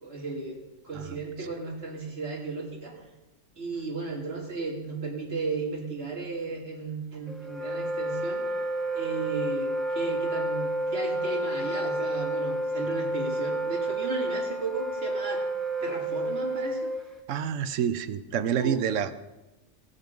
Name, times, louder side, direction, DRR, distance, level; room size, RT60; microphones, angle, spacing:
voice 1, 0.0-2.9 3.6-8.5 8.9-15.4 15.8-16.9 18.6-18.8, right 3 dB, 55° right, -2 dB, 2.7 m, -35 dB
Wind instrument woodwind instrument, 7.3-17.2, right 1 dB, ahead, 0.8 m, -30 dB
voice 2, 17.3-19.2, right 8 dB, 90° right, 12 dB, 1.0 m, -28 dB
17.5 x 6.2 x 5.1 m, 1.0 s
omnidirectional pair, 1.3 m